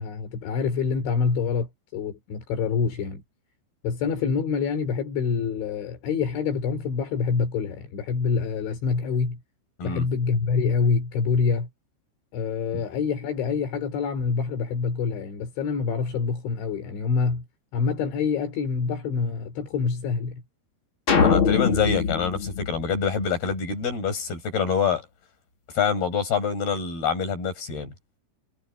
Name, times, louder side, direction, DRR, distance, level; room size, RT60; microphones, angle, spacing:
voice 1, 0.0-3.2 3.8-9.4 9.8-11.7 12.3-17.5 17.7-20.4, left 5 dB, 80° left, 6.0 m, -26 dB
sound 1, 21.1-23.5, left 6 dB, 35° left, 2.5 m, -23 dB
voice 2, 21.2-25.0 25.7-27.9, left 6 dB, 55° left, 9.2 m, -26 dB
omnidirectional pair, 5.2 m